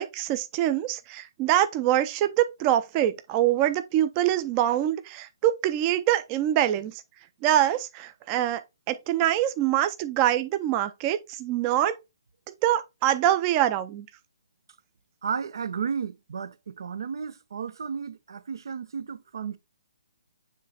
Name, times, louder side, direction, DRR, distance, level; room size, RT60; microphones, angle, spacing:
voice 1, 0.0-6.9 7.4-8.6 8.9-12.0 12.5-14.1, right 12 dB, 25° right, 0.5 m, -24 dB
voice 2, 15.2-19.6, right 6 dB, 70° right, 0.7 m, -33 dB
7.3 x 3.2 x 4.1 m
hypercardioid pair, 145°, 2 cm